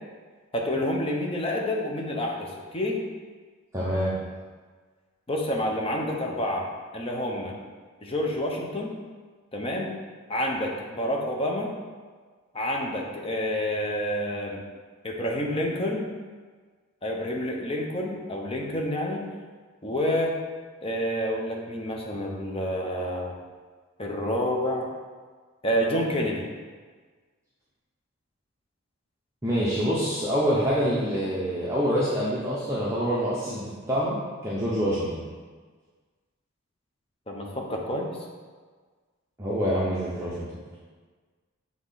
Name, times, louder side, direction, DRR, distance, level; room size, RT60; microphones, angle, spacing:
voice 1, 0.5-3.0 5.3-6.7 6.9-7.5 8.0-8.9 9.5-9.9 10.3-11.7 12.5-14.6 15.0-16.1 17.0-19.3 19.8-20.3 20.8-23.3 24.0-24.9 25.6-26.4 37.3-38.2, equal, 25° left, 0 dB, 0.8 m, -28 dB
voice 2, 3.7-4.1 29.4-34.2 34.4-35.2 39.4-40.5, equal, 15° right, -8 dB, 0.8 m, -26 dB
7.7 x 3.6 x 4.0 m, 1.5 s
head